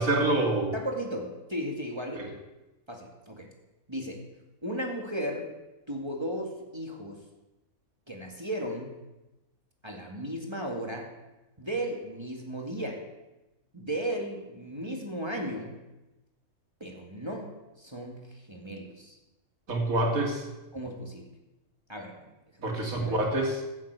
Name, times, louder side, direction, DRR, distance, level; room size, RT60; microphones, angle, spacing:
voice 1, 0.0-0.7 2.1-2.3 19.7-20.4 22.6-23.5, right 2 dB, 75° right, 1 dB, 2.8 m, -26 dB
voice 2, 0.7-2.3 2.9-3.5 3.9-4.2 4.6-5.5 5.9-7.2 8.1-9.0 9.8-11.1 11.6-13.0 13.7-15.8 16.8-17.5 17.8-19.2 20.7-21.3 21.9-22.3 22.6-23.2, right 1 dB, 20° right, 0 dB, 2.0 m, -35 dB
14.5 x 7.7 x 8.1 m, 1.0 s
omnidirectional pair, 1.5 m